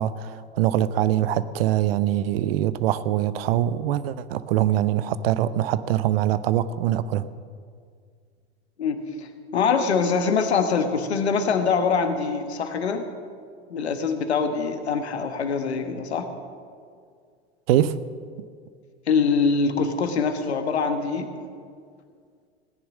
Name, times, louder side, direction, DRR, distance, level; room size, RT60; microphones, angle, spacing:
voice 1, 0.0-7.3 17.7-18.0, right 12 dB, 60° right, 15 dB, 0.7 m, -23 dB
voice 2, 8.8-13.0 13.7-16.3 19.1-21.3, left 5 dB, 75° left, 7 dB, 1.4 m, -24 dB
16.5 x 10.0 x 6.3 m, 2.1 s
figure-of-eight pair, 80°, 33 cm